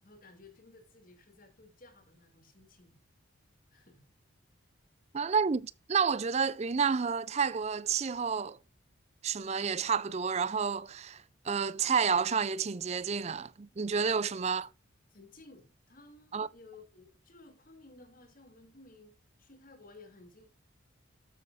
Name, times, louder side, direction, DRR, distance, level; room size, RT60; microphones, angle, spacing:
voice 1, 0.0-3.0 3.7-4.0 14.1-14.4 15.1-20.5, left 3 dB, 40° left, 2.8 m, -56 dB
voice 2, 5.1-8.6 9.2-14.7 16.3-16.5, right 6 dB, 30° right, 0.4 m, -30 dB
13.5 x 8.3 x 2.5 m
head